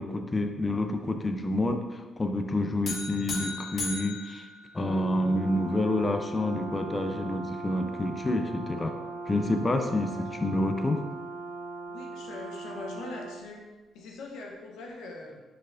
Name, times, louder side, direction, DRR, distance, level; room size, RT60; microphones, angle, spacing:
voice 1, 0.0-4.5 4.7-8.9 9.3-11.0, left 1 dB, 25° left, 5 dB, 0.4 m, -28 dB
sound 1, 2.8-5.3, left 3 dB, 55° left, 1.0 m, -37 dB
Brass instrument, 4.8-13.5, right 3 dB, 80° right, 1.4 m, -39 dB
voice 2, 11.9-13.6 13.9-15.4, left 2 dB, 85° left, 0 dB, 0.8 m, -42 dB
5.0 x 4.2 x 2.5 m, 1.2 s
cardioid pair, 90°, 0 cm